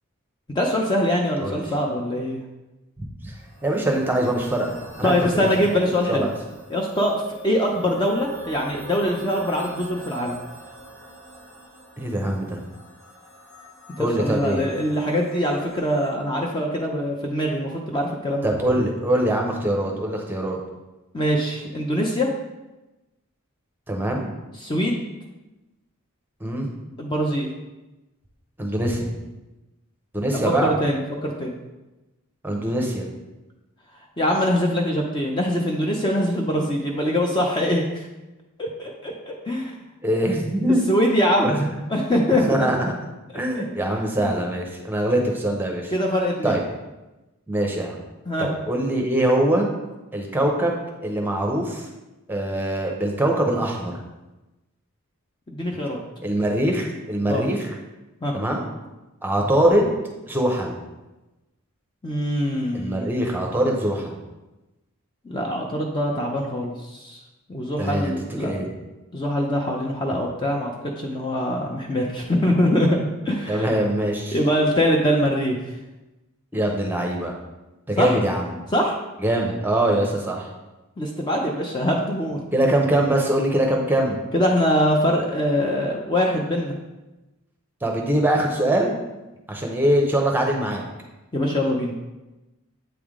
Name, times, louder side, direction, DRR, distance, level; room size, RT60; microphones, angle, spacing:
voice 1, 0.6-2.4 5.0-6.3 6.7-10.4 14.0-18.5 21.1-22.3 24.6-25.0 27.0-27.5 30.6-31.6 34.2-38.1 38.6-39.7 40.9-41.6 41.9-42.7 43.3-43.4 44.2-44.3 45.9-46.6 48.3-48.5 55.5-56.0 57.3-57.5 58.2-58.3 62.0-63.1 65.3-67.2 67.5-68.5 69.1-73.8 74.3-75.6 78.0-78.2 78.7-79.0 81.0-82.4 84.3-86.7 91.3-91.9, equal, 20° left, 0 dB, 0.5 m, -23 dB
sound 1, 3.3-16.1, right 1 dB, 85° left, 2.1 m, -43 dB
voice 2, 3.6-5.7 6.1-6.3 12.0-12.6 14.0-14.6 18.4-20.6 23.9-24.3 26.4-26.7 28.6-29.1 30.1-30.7 32.4-33.1 40.0-40.8 41.4-41.7 42.5-42.9 43.3-45.9 46.4-46.6 47.5-48.0 48.4-49.7 50.1-50.8 51.0-51.8 52.3-54.0 56.2-57.7 58.3-58.6 59.2-59.9 60.3-60.8 62.7-64.2 67.8-68.1 68.4-68.7 73.5-74.4 76.5-77.3 77.9-78.5 79.2-80.5 82.5-84.2 87.8-89.0 89.5-90.8, right 1 dB, 10° right, 1 dB, 0.7 m, -23 dB
7.9 x 3.4 x 3.6 m, 1.0 s
head